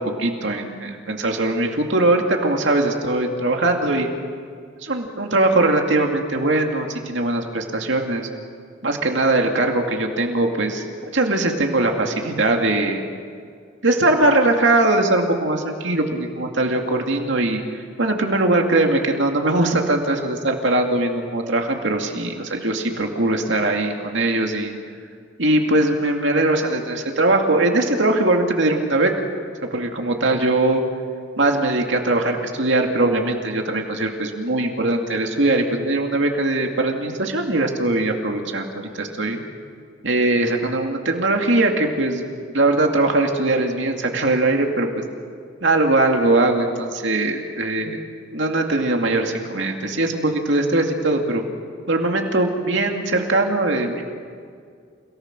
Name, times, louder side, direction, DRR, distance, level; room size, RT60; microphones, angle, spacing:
voice 1, 0.0-4.1 4.8-8.3 8.8-10.8 11.1-13.0 13.8-17.6 18.0-24.7 25.4-29.1 29.7-30.8 31.4-39.4 40.0-42.2 42.5-44.9 45.6-48.0 48.3-51.4 51.9-54.0, right 2 dB, 75° right, 2 dB, 2.4 m, -20 dB
30.0 x 18.5 x 6.1 m, 2.2 s
head